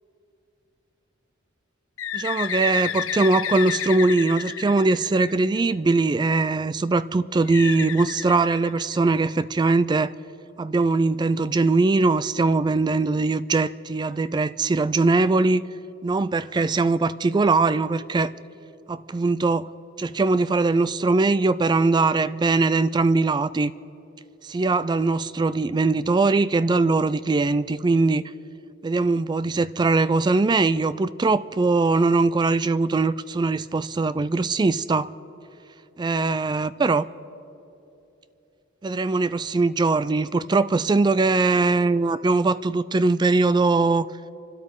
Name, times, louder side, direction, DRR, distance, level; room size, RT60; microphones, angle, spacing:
Bird, 2.0-5.7 7.5-9.3, left 9 dB, 80° left, 0.5 m, -31 dB
voice 1, 2.1-10.1 10.6-15.6 16.0-18.3 18.9-19.7 20.0-23.7 24.4-28.2 28.8-35.1 36.0-37.1 38.8-44.1, right 3 dB, 20° right, 0.3 m, -21 dB
27.5 x 12.5 x 3.7 m
head